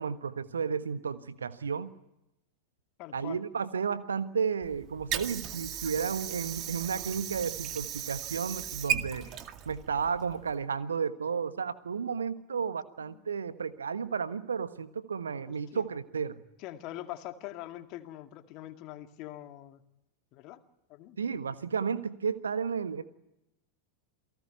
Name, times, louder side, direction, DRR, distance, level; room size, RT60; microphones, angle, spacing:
voice 1, 0.0-1.9 3.1-9.3 9.6-16.4 21.2-23.0, right 6 dB, 70° right, 12 dB, 1.4 m, -33 dB
voice 2, 3.0-3.4 13.1-13.3 15.5-15.8 16.6-19.8 20.3-20.6 20.9-21.2, left 14 dB, 40° left, 7 dB, 2.2 m, -43 dB
Water / Sink (filling or washing), 4.6-10.6, right 10 dB, 35° right, 2.1 m, -36 dB
29.0 x 18.5 x 9.5 m, 0.87 s
figure-of-eight pair, 90°, 0 cm